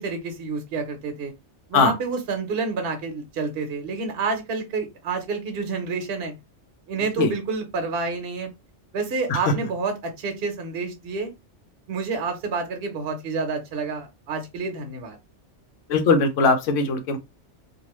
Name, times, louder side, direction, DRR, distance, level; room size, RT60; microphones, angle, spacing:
voice 1, 0.0-1.3 1.7-6.3 6.9-8.5 8.9-11.3 11.9-15.2, right 4 dB, 60° right, 0.8 m, -29 dB
voice 2, 15.9-17.2, left 4 dB, 85° left, 1.0 m, -20 dB
2.5 x 2.3 x 2.9 m
omnidirectional pair, 1.3 m